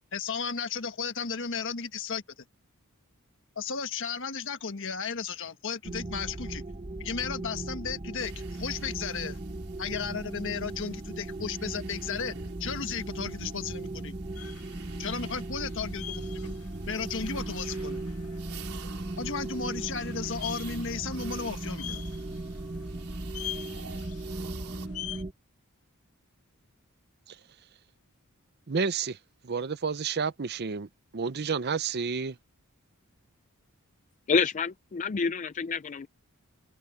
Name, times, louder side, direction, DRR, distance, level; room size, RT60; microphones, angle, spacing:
voice 1, 0.1-2.2 3.5-6.6 7.0-9.4 9.8-12.3 12.6-14.1 15.0-16.5 16.9-18.0 19.2-22.0, left 5 dB, 60° left, 1.4 m, -34 dB
sound 1, 5.8-25.3, right 2 dB, 30° right, 1.0 m, -37 dB
sound 2, 8.2-24.9, right 4 dB, 80° right, 3.7 m, -48 dB
sound 3, 14.4-25.2, left 12 dB, 80° left, 1.8 m, -45 dB
voice 2, 28.7-29.2 29.4-30.9 31.1-32.4, right 5 dB, 45° right, 0.6 m, -30 dB
voice 3, 34.3-36.1, left 5 dB, 35° left, 0.4 m, -28 dB
head